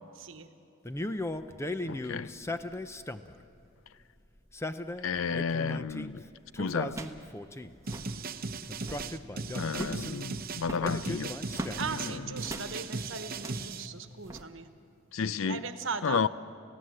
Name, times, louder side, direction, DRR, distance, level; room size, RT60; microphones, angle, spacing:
voice 1, 0.1-0.5 11.7-14.7 15.5-16.2, right 5 dB, 65° right, 1.2 m, -38 dB
Male speech man speaking, 0.8-3.4 4.4-6.1 6.5-7.8 8.7-10.2 10.8-12.3, left 1 dB, 15° left, 0.5 m, -37 dB
voice 2, 1.8-2.4 5.0-6.2 6.6-7.0 9.5-11.3 15.1-15.6 16.0-16.3, left 5 dB, 75° left, 0.5 m, -31 dB
sound 1, 6.0-6.2 6.9-7.3 7.5-7.6 7.8-8.2 8.7-9.1 9.7-10.1 10.6-11.8 12.4-12.7 13.3-13.7 14.2-14.4, right 1 dB, 15° right, 1.1 m, -41 dB
sound 2, 7.9-13.9, right 3 dB, 45° right, 0.8 m, -38 dB
30.0 x 16.0 x 7.6 m
head